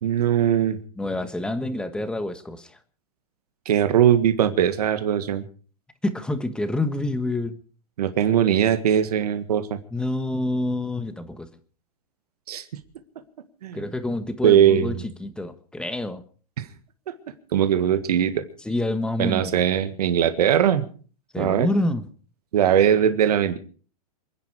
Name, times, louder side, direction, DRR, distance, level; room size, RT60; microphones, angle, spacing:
voice 1, 0.0-0.8 3.7-5.4 8.0-9.8 12.5-12.7 13.6-13.8 14.4-14.9 16.6-16.7 17.1-17.2 17.5-18.4 19.2-20.8 21.4-21.7 22.5-23.6, right 9 dB, 75° right, 9 dB, 1.8 m, -20 dB
voice 2, 1.0-2.8 6.0-7.6 9.9-11.5 13.7-14.9 15.2-16.2 18.6-19.5 21.3-22.1, left 1 dB, 5° left, 10 dB, 1.4 m, -27 dB
27.5 x 10.5 x 4.8 m, 0.41 s
hypercardioid pair, 140°, 20 cm